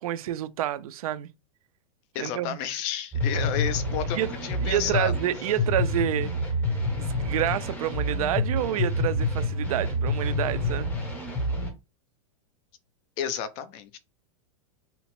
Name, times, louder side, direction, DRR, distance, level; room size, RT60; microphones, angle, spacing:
voice 1, 0.0-1.3 2.2-2.6 4.1-4.3 4.6-6.3 7.0-10.9, right 12 dB, 85° right, 0.4 m, -28 dB
voice 2, 2.1-5.1 13.2-14.0, left 8 dB, 35° left, 0.4 m, -31 dB
sound 1, 3.1-11.7, left 1 dB, 10° left, 0.7 m, -28 dB
2.7 x 2.1 x 2.9 m
supercardioid pair, 150°, 18 cm